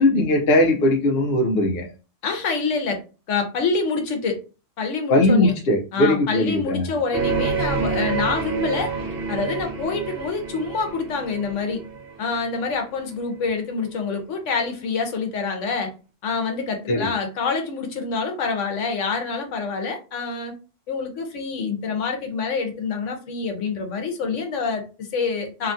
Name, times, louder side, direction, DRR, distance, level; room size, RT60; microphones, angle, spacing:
voice 1, 0.0-1.9 5.1-7.0 16.9-17.1, left 1 dB, 60° left, 1 dB, 0.8 m, -19 dB
voice 2, 2.2-3.0 3.3-4.4 4.8-5.5 5.9-8.9 9.3-11.8 12.2-15.9 16.2-20.6 20.9-25.7, left 4 dB, 85° left, 4 dB, 1.1 m, -26 dB
sound 1, 7.1-12.7, right 5 dB, 55° right, 0.9 m, -28 dB
2.8 x 2.3 x 2.6 m, 0.32 s
omnidirectional pair, 1.3 m